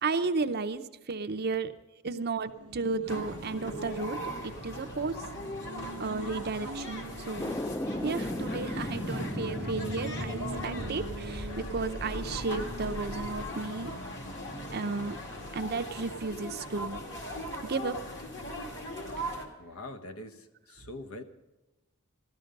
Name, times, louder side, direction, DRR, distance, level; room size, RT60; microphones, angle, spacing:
voice 1, 0.0-1.7 2.0-5.1 6.0-7.6 8.0-13.9 14.7-15.2 15.5-17.0 17.6-18.0 19.2-19.3, right 4 dB, 45° right, 9 dB, 0.6 m, -33 dB
Race car auto racing, 2.4-18.6, right 2 dB, 80° right, 0.8 m, -46 dB
sound 1, 3.1-19.5, equal, 55° left, 2.3 m, -40 dB
sound 2, 7.4-13.5, left 1 dB, 10° left, 0.4 m, -37 dB
voice 2, 19.6-21.2, left 2 dB, 70° left, 7 dB, 1.1 m, -43 dB
14.0 x 13.0 x 5.3 m, 1.1 s
head